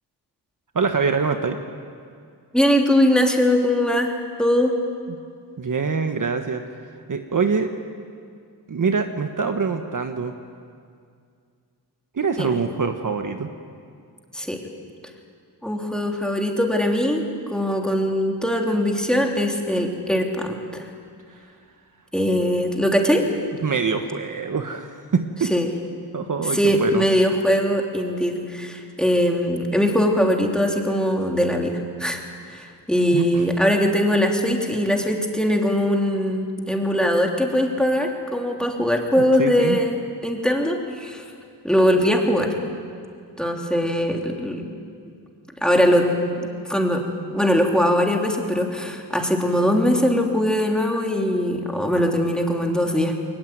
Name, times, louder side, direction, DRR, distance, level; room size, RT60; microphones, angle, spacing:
voice 1, 0.7-1.6 5.1-5.2 5.6-6.6 7.1-7.7 8.7-10.3 12.1-13.5 21.3-21.4 23.6-25.5 26.1-27.1 33.1-33.4 39.2-39.8, right 5 dB, 45° right, 6 dB, 1.4 m, -24 dB
voice 2, 2.5-4.1 4.4-4.7 12.4-12.5 14.3-14.6 15.6-20.9 22.1-23.2 25.5-25.7 26.5-32.2 32.5-40.0 40.2-41.2 41.6-42.5 43.4-44.8 45.6-46.1 46.4-47.0 47.3-53.1, equal, ahead, 1 dB, 3.4 m, -21 dB
21.5 x 19.5 x 9.4 m, 2.3 s
cardioid pair, 75°, 43 cm